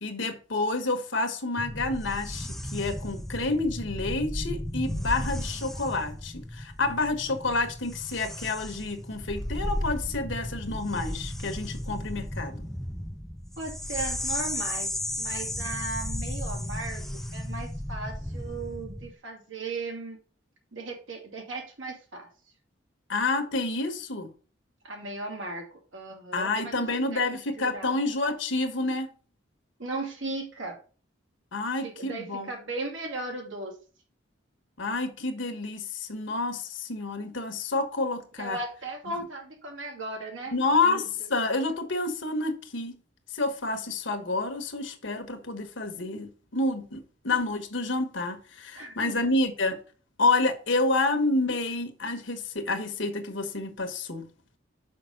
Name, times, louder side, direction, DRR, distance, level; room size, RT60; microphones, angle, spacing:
voice 1, 0.0-12.7 23.1-24.3 26.3-29.1 31.5-32.5 34.8-38.6 40.5-43.0 43.3-49.8 50.2-54.3, left 3 dB, 70° left, 1.3 m, -29 dB
sound 1, 1.6-19.1, left 1 dB, ahead, 0.4 m, -34 dB
voice 2, 13.6-14.9 15.2-20.2 20.7-22.3 24.8-28.0 29.8-30.8 31.8-33.8 38.4-41.3 44.2-44.3 48.8-49.2, right 2 dB, 80° right, 2.6 m, -37 dB
5.9 x 5.4 x 6.5 m
head